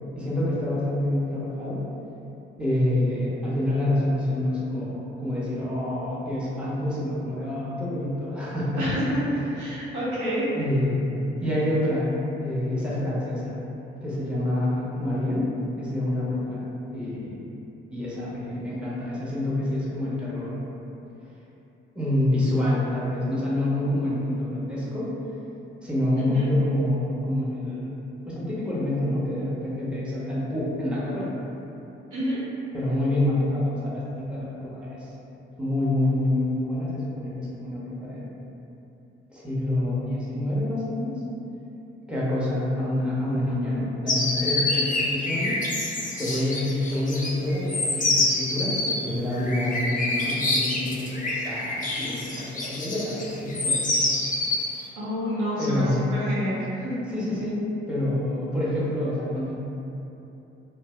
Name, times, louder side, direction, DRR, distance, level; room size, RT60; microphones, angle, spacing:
voice 1, 0.2-1.8 2.6-8.9 10.5-11.1 11.4-12.1 12.4-13.6 14.0-15.5 15.8-16.6 16.9-17.4 17.9-20.6 21.9-25.1 25.8-28.0 28.3-31.3 32.7-35.0 35.6-38.3 39.3-41.1 42.1-45.6 46.1-48.8 49.0-54.1 55.6-56.0 57.1-57.6 57.9-59.5, left 1 dB, 5° right, -9 dB, 1.0 m, -27 dB
voice 2, 8.8-9.2 9.5-10.5 26.2-26.4 32.1-32.4 55.0-56.9, equal, 75° right, -8 dB, 0.8 m, -28 dB
sound 1, 44.1-54.8, left 2 dB, 25° left, 0.6 m, -27 dB
2.6 x 2.2 x 3.3 m, 2.9 s
hypercardioid pair, 45°, 30 cm